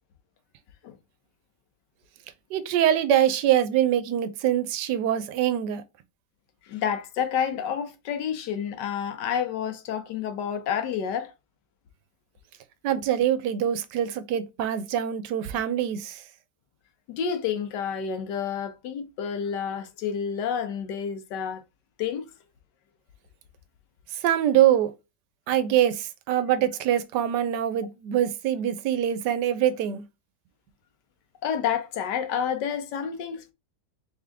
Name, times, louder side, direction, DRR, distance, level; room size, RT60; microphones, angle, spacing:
voice 1, 2.5-5.8 12.8-16.2 24.2-24.9 25.5-30.0, right 11 dB, 85° right, 1.2 m, -24 dB
voice 2, 6.7-11.3 17.1-21.6 22.0-22.3 31.4-33.5, left 8 dB, 85° left, 1.4 m, -29 dB
3.6 x 3.6 x 3.4 m
omnidirectional pair, 1.8 m